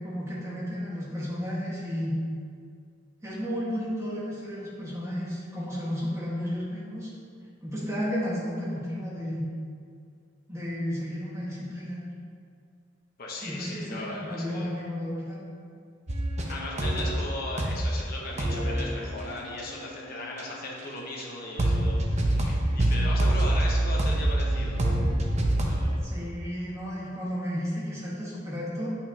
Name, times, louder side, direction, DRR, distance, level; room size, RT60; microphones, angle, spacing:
voice 1, 0.0-2.1 3.2-7.1 7.6-9.4 10.5-12.0 13.4-15.4 26.0-29.0, equal, 15° right, -7 dB, 1.6 m, -33 dB
voice 2, 13.2-14.7 16.5-24.9 25.6-26.0, left 2 dB, 50° left, -3 dB, 1.0 m, -37 dB
sound 1, 16.1-17.3 17.6-18.0 18.4-20.8 21.2-21.3 21.6-26.0, right 1 dB, 35° right, 0.8 m, -26 dB
9.1 x 5.8 x 2.9 m, 2.2 s
head